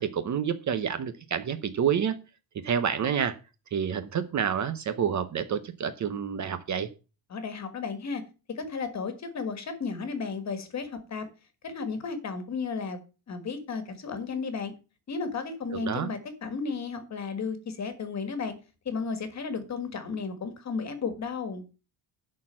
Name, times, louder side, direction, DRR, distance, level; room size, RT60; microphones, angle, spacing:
voice 1, 0.0-2.2 2.6-3.4 3.7-6.9 15.7-16.1, right 8 dB, 35° right, 0.8 m, -28 dB
voice 2, 7.3-8.2 8.5-11.3 11.6-13.0 13.3-14.7 15.1-18.5 18.8-21.6, left 5 dB, 35° left, 1.7 m, -33 dB
11.5 x 4.4 x 7.4 m
cardioid pair, 170°, 48 cm